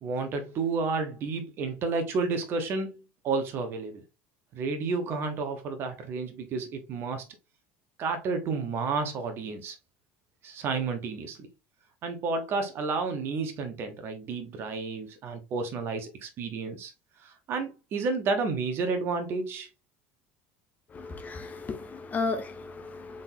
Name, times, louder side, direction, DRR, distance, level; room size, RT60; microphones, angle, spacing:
voice 1, 0.0-4.0 4.5-7.2 8.0-9.8 10.4-11.5 12.0-16.9 17.2-19.7, right 4 dB, 50° right, 1.0 m, -31 dB
voice 2, 20.9-23.2, left 4 dB, 30° left, 0.8 m, -34 dB
3.8 x 3.8 x 2.6 m
hypercardioid pair, 75°, 5 cm